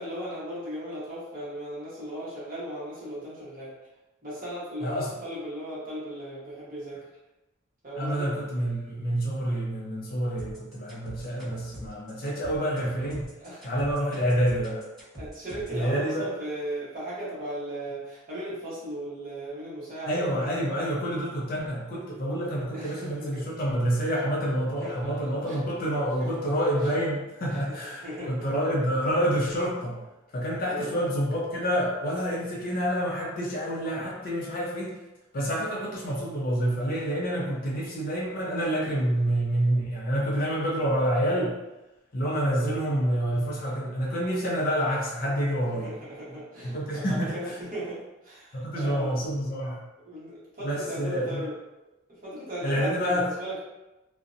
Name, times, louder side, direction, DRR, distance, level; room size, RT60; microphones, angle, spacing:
voice 1, 0.0-3.7 4.2-7.0 7.8-8.3 12.6-12.7 13.4-13.7 15.2-20.6 22.7-23.4 24.8-25.6 26.2-26.3 26.8-26.9 27.5-28.5 30.7-31.0 42.5-42.8 45.8-49.2 50.0-51.5 52.1-53.6, right 1 dB, 40° right, -8 dB, 0.9 m, -37 dB
voice 2, 8.0-13.3 13.6-14.9 15.7-16.3 20.1-30.0 30.3-34.9 35.3-41.6 42.1-45.9 46.6-47.6 48.5-49.8 50.6-51.4 52.6-53.3, equal, 40° left, -3 dB, 0.4 m, -28 dB
sound 1, 10.4-15.8, equal, ahead, 1.2 m, -43 dB
2.5 x 2.0 x 2.5 m, 1.0 s
head